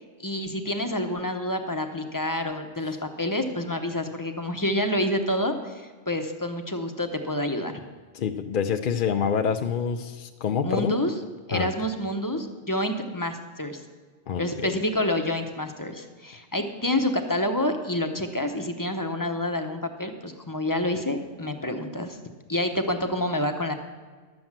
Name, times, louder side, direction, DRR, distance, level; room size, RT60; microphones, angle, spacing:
voice 1, 0.2-7.8 10.6-11.1 11.5-13.8 14.4-22.2 22.5-23.7, left 1 dB, 20° left, 6 dB, 0.8 m, -28 dB
voice 2, 8.1-11.0 11.5-11.7 14.3-14.8, left 7 dB, 55° left, 6 dB, 0.7 m, -27 dB
12.0 x 7.8 x 7.3 m, 1.5 s
omnidirectional pair, 1.2 m